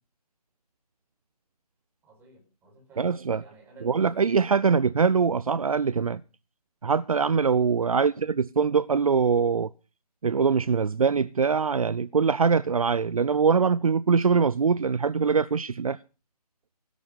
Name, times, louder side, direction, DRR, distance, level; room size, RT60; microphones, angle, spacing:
voice 1, 2.0-3.1 3.4-4.8 7.9-8.2, right 3 dB, 10° right, 5.3 m, -54 dB
voice 2, 3.0-3.4 3.8-6.2 6.8-9.7 10.2-16.0, right 5 dB, 55° right, 0.7 m, -23 dB
17.0 x 11.5 x 5.1 m
figure-of-eight pair, 150°, 21 cm